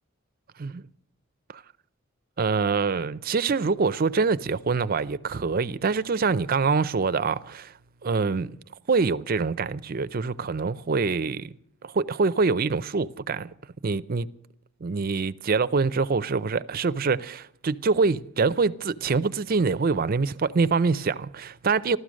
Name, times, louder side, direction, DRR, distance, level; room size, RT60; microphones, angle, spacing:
voice 1, 2.4-7.7 8.0-8.6 8.9-11.5 11.8-13.5 13.8-14.3 14.8-22.0, right 4 dB, 45° right, 0.5 m, -25 dB
15.0 x 12.5 x 6.3 m
head